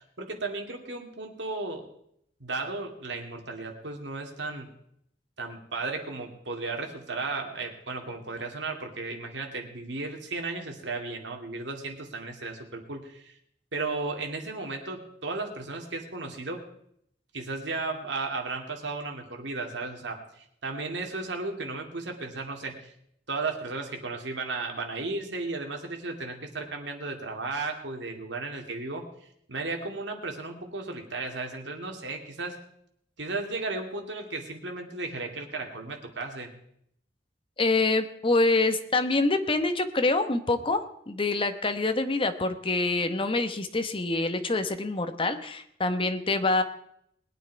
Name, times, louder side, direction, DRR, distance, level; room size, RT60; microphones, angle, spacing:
voice 1, 0.0-1.8 2.4-4.7 5.4-13.3 13.7-16.6 17.3-22.9 23.3-29.1 29.5-32.6 33.2-36.5, right 3 dB, 75° right, 3 dB, 2.4 m, -35 dB
voice 2, 37.6-46.6, left 2 dB, 30° left, 8 dB, 1.1 m, -26 dB
20.5 x 9.3 x 4.7 m, 0.71 s
head